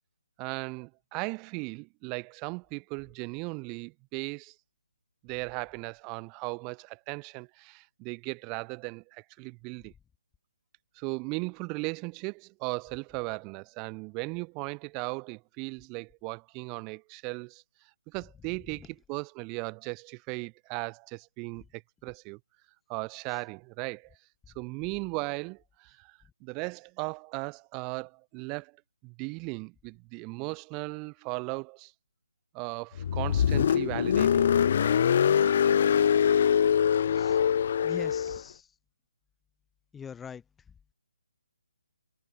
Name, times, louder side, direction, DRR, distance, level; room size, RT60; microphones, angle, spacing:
voice 1, 0.4-4.5 5.2-9.9 11.0-17.6 18.1-22.4 22.9-24.1 24.6-28.8 29.0-31.9 32.5-34.7, right 31 dB, 20° right, 4.2 m, -37 dB
Car, 33.0-38.4, left 8 dB, 40° left, 1.6 m, -23 dB
voice 2, 37.8-38.7 39.9-40.4, left 7 dB, 10° left, 3.7 m, -42 dB
figure-of-eight pair, 145°, 0 cm